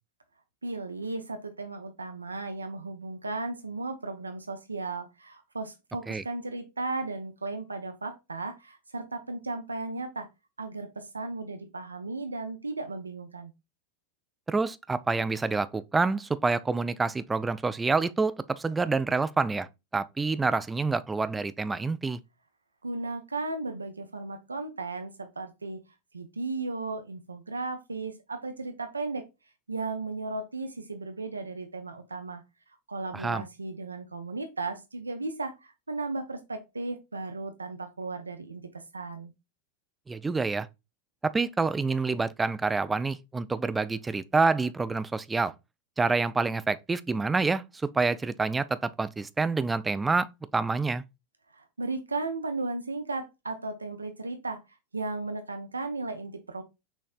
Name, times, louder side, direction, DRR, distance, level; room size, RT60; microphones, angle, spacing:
voice 1, 0.6-10.3 10.6-13.5 22.8-25.8 26.1-29.2 29.7-32.4 32.9-39.3 51.5-54.6 54.9-56.6, right 3 dB, 80° right, 0.6 m, -35 dB
voice 2, 14.5-22.2 33.1-33.4 40.1-40.7 41.2-45.5 46.0-51.0, right 4 dB, 10° right, 0.3 m, -27 dB
6.3 x 3.2 x 2.4 m
figure-of-eight pair, 90°, 0 cm